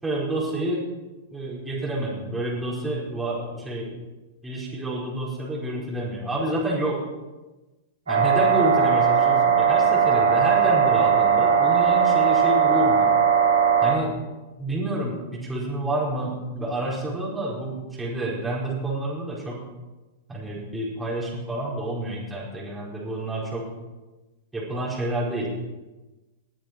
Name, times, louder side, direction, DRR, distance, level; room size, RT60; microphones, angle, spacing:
voice 1, 0.0-0.9 1.3-3.9 4.4-7.0 8.1-13.1 13.8-14.2 14.6-19.6 20.3-23.7 24.5-25.5, right 1 dB, 10° right, -6 dB, 5.3 m, -28 dB
sound 1, 8.1-13.9, right 7 dB, 85° right, 3.9 m, -19 dB
20.0 x 9.1 x 4.7 m, 1.1 s
hypercardioid pair, 105°, 0 cm